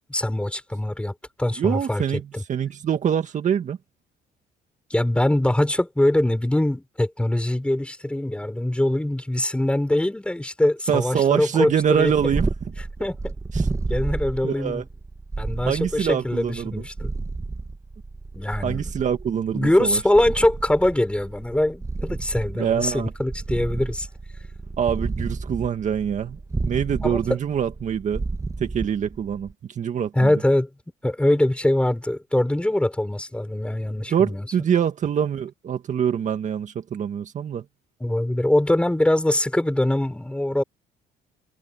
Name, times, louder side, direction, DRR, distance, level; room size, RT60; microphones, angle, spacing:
voice 1, 0.1-2.4 4.9-12.3 13.0-13.3 13.9-14.8 15.4-17.1 18.4-18.9 19.5-24.1 27.0-27.4 30.1-30.7 31.0-34.4 38.0-40.6, left 1 dB, 5° left, 5.9 m, -23 dB
voice 2, 1.6-2.2 2.5-3.8 10.9-12.5 13.5-13.7 14.4-14.8 15.6-16.8 18.6-20.0 22.6-23.1 24.8-28.2 28.6-30.3 34.1-37.6, right 8 dB, 45° right, 1.9 m, -24 dB
Purr, 12.1-29.5, right 3 dB, 20° right, 2.2 m, -31 dB
cardioid pair, 110°, 17 cm